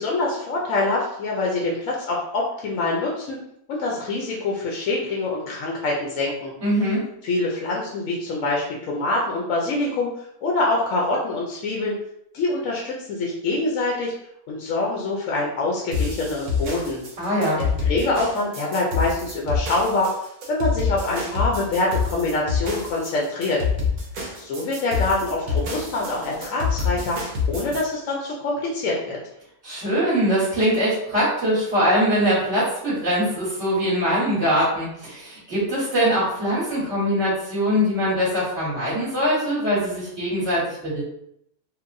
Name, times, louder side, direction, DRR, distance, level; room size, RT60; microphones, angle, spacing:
voice 1, 0.0-3.4 3.7-6.5 7.2-10.1 10.4-12.0 12.3-14.1 14.5-17.0 17.6-20.1 20.5-23.6 24.3-27.2 27.5-29.2, left 2 dB, 70° left, -2 dB, 1.0 m, -25 dB
voice 2, 6.6-7.1 17.2-17.6 29.6-41.0, equal, 50° right, -9 dB, 1.7 m, -22 dB
sound 1, 15.9-27.8, left 5 dB, 80° right, 1.3 m, -27 dB
4.5 x 2.1 x 2.5 m, 0.75 s
omnidirectional pair, 1.6 m